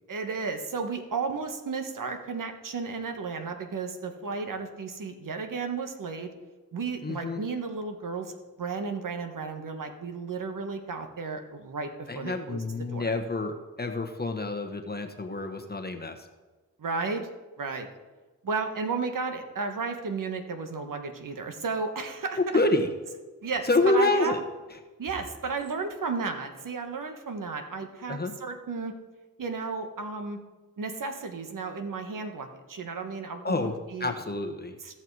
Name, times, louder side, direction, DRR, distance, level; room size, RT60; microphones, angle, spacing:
voice 1, 0.1-6.3 6.7-13.1 16.8-17.3 17.6-17.9 18.4-22.6 23.4-24.3 25.0-28.9 29.4-30.4 30.8-34.1 34.8-35.0, right 4 dB, 60° right, 6 dB, 1.3 m, -33 dB
voice 2, 7.0-7.4 12.1-16.2 22.4-22.9 23.6-24.4 28.1-28.3 33.4-33.7 34.0-34.8, left 2 dB, 25° left, 5 dB, 1.2 m, -27 dB
15.5 x 5.7 x 4.7 m, 1.2 s
cardioid pair, 55°, 36 cm